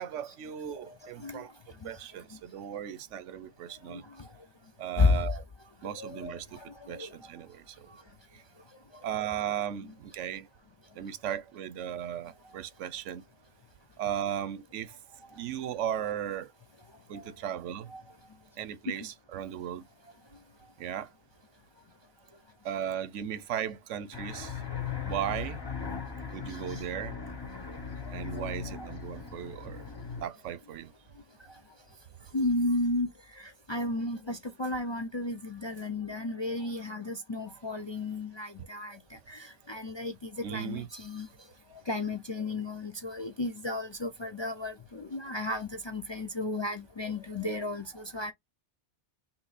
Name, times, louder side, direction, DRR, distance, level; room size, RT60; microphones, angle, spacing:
voice 1, 0.0-1.5 1.8-4.0 4.8-5.4 5.8-6.6 6.9-7.6 9.0-10.5 11.0-13.2 14.0-14.9 15.4-16.5 17.1-17.9 18.6-19.8 20.8-21.1 22.6-24.6 25.1-25.6 26.3-27.2 28.1-29.8 30.2-30.9 40.4-40.9, right 10 dB, 85° right, 1.0 m, -36 dB
voice 2, 0.9-1.4 1.8-1.9 3.9-4.3 5.0-5.2 5.8-7.3 8.9-9.0 17.1-17.3 17.9-18.0 18.9-19.0 26.5-26.8 27.7-27.8 28.1-28.4 32.3-41.3 41.9-48.3, left 2 dB, 40° left, 0.4 m, -33 dB
sound 1, 24.1-30.2, left 6 dB, 20° left, 0.9 m, -38 dB
5.8 x 2.0 x 4.0 m
omnidirectional pair, 1.2 m